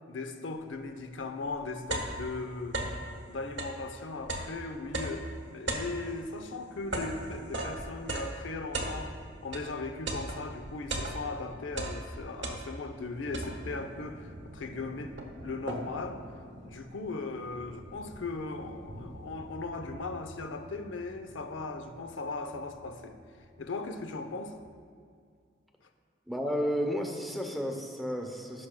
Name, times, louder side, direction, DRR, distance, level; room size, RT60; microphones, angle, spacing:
voice 1, 0.1-2.8 3.3-9.1 9.4-15.2 15.4-16.2 16.6-23.2 23.6-24.6, left 3 dB, 90° left, 7 dB, 0.7 m, -38 dB
sound 1, 1.0-1.1 1.5-3.1 3.5-9.7 10.1-11.4 11.7-13.0 13.3-13.9 14.5-14.6 14.9-16.1, right 1 dB, 80° right, 1.1 m, -36 dB
Thunder, 13.2-24.7, equal, 60° right, 1.0 m, -50 dB
voice 2, 26.3-28.7, equal, ahead, 2 dB, 0.6 m, -32 dB
16.5 x 6.0 x 2.2 m, 2.1 s
head